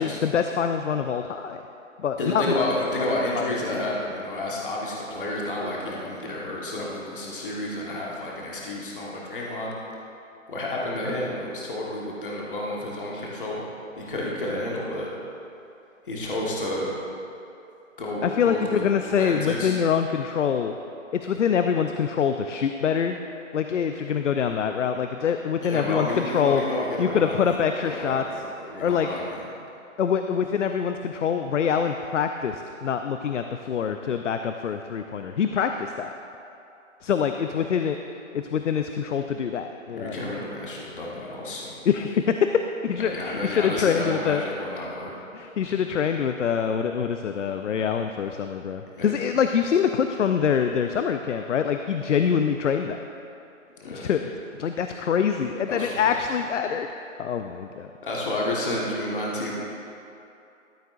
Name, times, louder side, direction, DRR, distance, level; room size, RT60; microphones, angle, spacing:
voice 1, 0.0-1.6 2.0-2.7 3.3-3.8 18.2-20.7 21.1-23.2 23.5-26.6 27.0-28.2 28.8-29.1 30.0-36.1 37.0-38.0 38.3-40.2 41.9-42.5 42.8-44.4 45.3-53.0 53.9-56.9 57.2-57.9, left 7 dB, 65° left, 7 dB, 0.5 m, -25 dB
voice 2, 2.2-9.7 10.5-13.6 14.0-15.1 16.0-17.0 18.0-18.6 19.1-19.8 25.6-27.6 27.8-29.4 39.9-41.8 43.0-45.1 48.9-49.1 53.8-54.1 55.7-56.1 58.0-59.5, left 1 dB, 40° left, -4 dB, 1.4 m, -30 dB
13.5 x 9.4 x 2.5 m, 2.7 s
hypercardioid pair, 175°, 40 cm